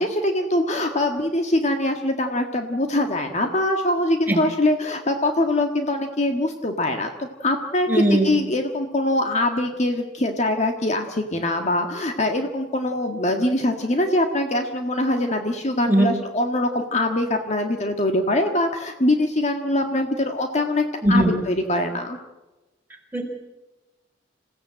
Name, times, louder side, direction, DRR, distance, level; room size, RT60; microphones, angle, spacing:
voice 1, 0.0-22.2, left 1 dB, 40° left, 4 dB, 1.6 m, -23 dB
voice 2, 7.9-8.4 15.9-16.1 21.0-21.3 23.1-23.3, right 1 dB, 10° right, 1 dB, 4.3 m, -19 dB
27.0 x 16.0 x 7.7 m, 1.1 s
head